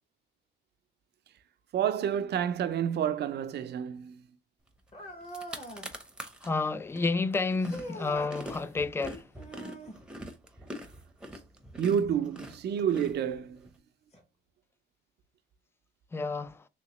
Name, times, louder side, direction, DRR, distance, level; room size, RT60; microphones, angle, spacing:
voice 1, 1.7-4.2 11.8-13.7, right 8 dB, 55° right, 0.5 m, -29 dB
dog crying, 4.9-6.0 7.6-8.3 9.3-10.0 12.1-12.2 13.1-13.2 14.1-14.2, right 1 dB, 35° left, 1.3 m, -43 dB
sound 1, 4.9-5.0 5.2-6.5 6.9-13.7, equal, 5° right, 0.7 m, -43 dB
voice 2, 6.4-9.3 16.1-16.7, left 3 dB, 10° left, 0.3 m, -30 dB
3.1 x 2.9 x 3.0 m
cardioid pair, 90°, 20 cm